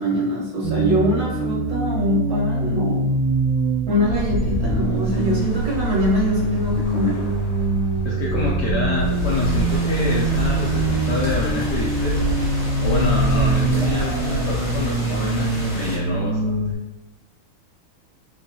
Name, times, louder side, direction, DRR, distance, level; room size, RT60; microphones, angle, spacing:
voice 1, 0.0-3.1 3.9-7.2, left 1 dB, 55° right, -8 dB, 1.5 m, -23 dB
sound 1, 0.6-16.7, right 3 dB, 80° right, 1.4 m, -24 dB
sound 2, 4.0-15.0, equal, 85° left, 1.5 m, -27 dB
voice 2, 8.0-12.2 12.8-16.6, left 4 dB, 70° left, -4 dB, 1.0 m, -26 dB
sound 3, 8.9-16.0, left 1 dB, 20° left, 0.7 m, -33 dB
3.6 x 3.3 x 2.7 m, 0.99 s
omnidirectional pair, 2.3 m